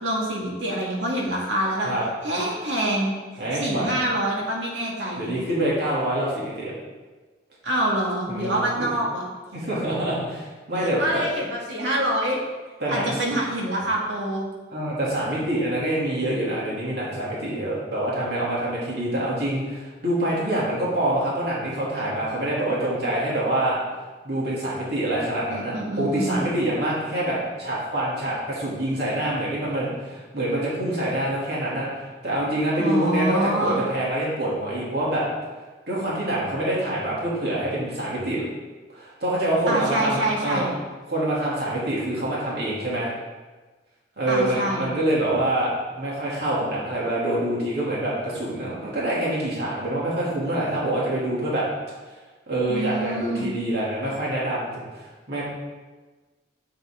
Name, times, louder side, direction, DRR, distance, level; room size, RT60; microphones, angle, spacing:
voice 1, 0.0-1.9 2.2-3.1 3.5-5.4 7.6-9.3 10.7-12.4 12.9-14.5 25.5-26.4 32.8-33.8 39.7-40.8 44.3-44.9 52.7-53.6, right 1 dB, 90° right, -3 dB, 2.4 m, -26 dB
voice 2, 3.4-3.9 5.2-6.7 8.3-8.9 9.5-11.2 12.8-13.2 14.7-23.8 24.2-35.2 35.9-38.4 38.9-40.7 41.1-43.1 44.2-51.7 52.5-54.8 55.3-55.4, right 1 dB, 60° right, -6 dB, 2.9 m, -26 dB
10.0 x 7.5 x 3.8 m, 1.3 s
head